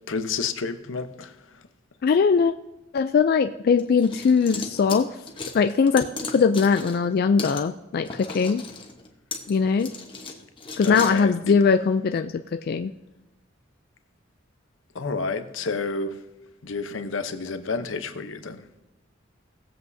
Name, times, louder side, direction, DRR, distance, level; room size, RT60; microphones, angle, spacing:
voice 1, 0.1-1.6 10.8-11.6 14.9-16.2 16.6-18.6, left 4 dB, 85° left, 0.8 m, -30 dB
voice 2, 2.0-2.5 2.9-5.1 5.5-8.6 9.5-9.9 10.8-12.9, left 5 dB, 50° left, 0.3 m, -21 dB
sound 1, 3.8-7.1 7.4-7.6 8.0-11.2, left 4 dB, 25° left, 1.1 m, -36 dB
19.0 x 7.7 x 2.7 m
head